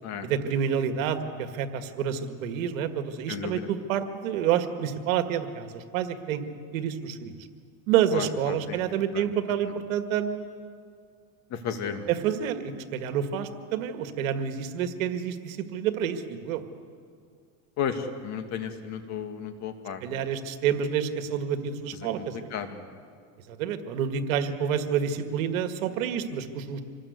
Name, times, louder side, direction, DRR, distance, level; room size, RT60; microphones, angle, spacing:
voice 1, 0.2-6.4 6.7-7.5 7.9-10.5 12.1-16.6 20.0-22.5 23.5-26.8, right 8 dB, 85° right, 7 dB, 1.9 m, -28 dB
voice 2, 3.3-3.7 8.1-8.8 9.1-9.2 11.5-12.1 17.8-20.2 22.2-22.9, left 7 dB, 45° left, 6 dB, 2.4 m, -34 dB
26.5 x 20.0 x 8.2 m, 2.2 s
supercardioid pair, 140°, 40 cm